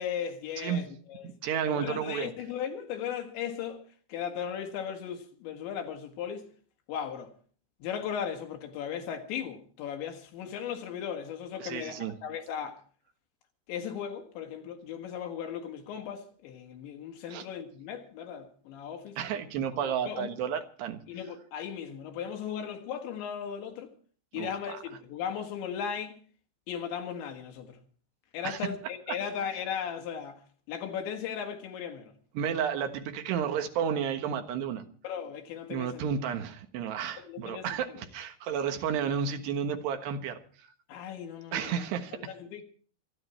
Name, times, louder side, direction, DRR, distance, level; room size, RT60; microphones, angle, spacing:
voice 1, 0.0-1.4 1.7-3.8 4.1-6.5 6.9-7.3 7.8-12.8 13.7-19.4 19.8-20.3 21.1-23.9 24.3-26.2 26.7-27.8 28.3-30.4 30.7-32.1 35.0-36.0 37.2-38.0 40.9-41.8 42.1-42.6, left 8 dB, 75° left, 3.9 m, -37 dB
voice 2, 1.2-2.3 11.6-12.1 17.3-17.5 19.2-21.0 24.3-24.5 28.4-28.6 32.3-34.8 35.7-40.7 41.5-42.2, right 7 dB, 70° right, 3.2 m, -32 dB
26.0 x 11.0 x 4.4 m
omnidirectional pair, 5.5 m